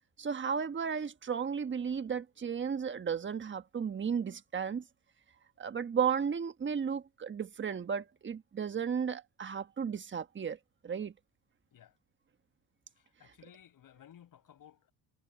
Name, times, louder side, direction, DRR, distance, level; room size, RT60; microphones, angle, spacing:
voice 1, 0.2-4.8 5.6-10.6 10.8-11.1, right 7 dB, 30° right, 1.4 m, -34 dB
voice 2, 13.0-14.9, left 10 dB, 60° left, 7.3 m, -57 dB
cardioid pair, 110°, 37 cm